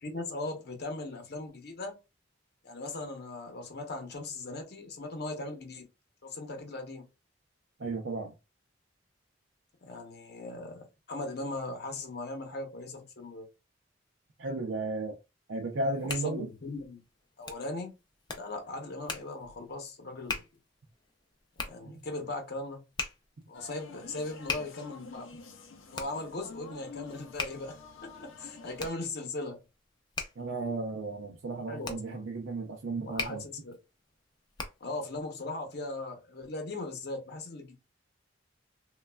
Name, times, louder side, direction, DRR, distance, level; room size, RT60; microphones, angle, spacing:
voice 1, 0.0-2.0 2.6-5.9 6.2-7.0 9.8-13.4 16.1-17.0 17.4-17.9 18.3-20.4 21.6-22.8 23.5-25.3 25.9-29.6 31.7-32.4 33.0-33.8 34.8-37.7, left 2 dB, 55° left, 0.8 m, -39 dB
voice 2, 7.8-8.3 14.4-15.2 15.5-16.5 21.9-22.0 30.4-33.4, right 2 dB, 70° right, 0.5 m, -34 dB
Hands, 15.7-35.0, left 4 dB, 20° left, 0.4 m, -42 dB
sound 1, 23.5-28.9, left 3 dB, 85° left, 0.5 m, -49 dB
3.1 x 2.3 x 2.2 m
head